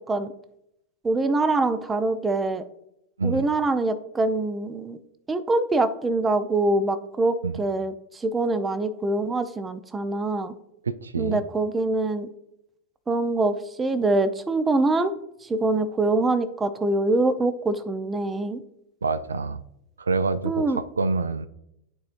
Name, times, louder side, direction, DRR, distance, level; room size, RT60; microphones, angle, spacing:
voice 1, 1.0-2.6 3.2-5.0 5.3-10.5 11.2-12.3 13.1-15.1 15.4-18.6 20.4-20.8, right 2 dB, 15° right, 13 dB, 0.6 m, -24 dB
voice 2, 10.8-11.4 19.0-19.6 20.0-21.5, right 4 dB, 75° right, 14 dB, 0.4 m, -27 dB
12.5 x 4.4 x 2.5 m, 0.80 s
figure-of-eight pair, 90°, 0 cm